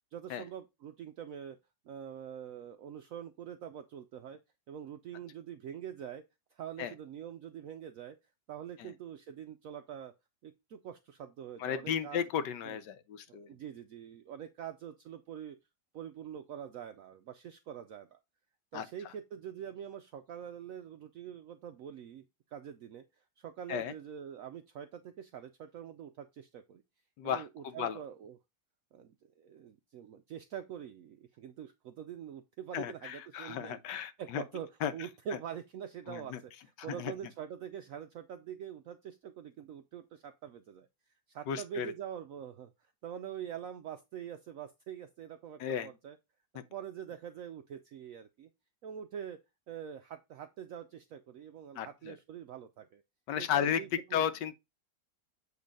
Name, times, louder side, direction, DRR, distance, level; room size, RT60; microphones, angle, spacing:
voice 1, 0.1-1.6 1.9-4.4 4.7-6.2 6.5-8.2 8.5-10.1 10.4-12.2 12.6-12.8 13.3-15.6 15.9-18.2 18.7-22.3 22.5-26.8 27.2-28.4 28.9-40.9 41.3-42.7 43.0-46.2 46.7-48.5 48.8-49.4 49.7-53.0 53.4-54.2, right 9 dB, 75° right, 0.7 m, -45 dB
voice 2, 11.6-13.5 18.7-19.1 23.7-23.9 27.2-28.0 32.7-34.4 34.8-34.9 36.1-36.4 36.9-37.1 41.5-41.9 45.6-45.9 46.5-46.6 51.8-52.1 53.3-53.8 54.1-54.5, left 9 dB, 80° left, 1.3 m, -34 dB
8.1 x 2.9 x 5.1 m
omnidirectional pair, 1.9 m